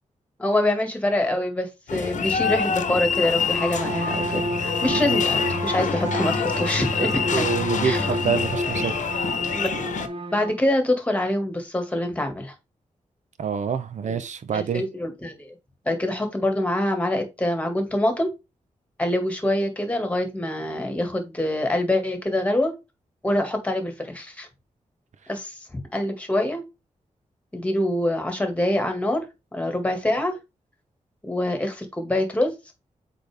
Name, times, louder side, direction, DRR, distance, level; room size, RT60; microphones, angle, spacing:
voice 1, 0.4-7.5 7.8-8.1 9.5-9.7 10.3-12.5 14.1-14.2 14.5-15.6 15.9-18.3 19.0-22.7 23.2-24.5 25.3-25.6 25.9-26.6 27.5-29.3 29.5-30.4 31.2-32.5, left 1 dB, 10° left, 1.9 m, -25 dB
sound 1, 1.9-10.1, left 6 dB, 90° left, 1.0 m, -26 dB
Bowed string instrument, 3.0-10.6, right 1 dB, 45° right, 1.1 m, -30 dB
voice 2, 7.0-8.9 13.4-14.8, right 7 dB, 75° right, 0.9 m, -27 dB
7.9 x 4.4 x 3.5 m
wide cardioid pair, 160°, 13 cm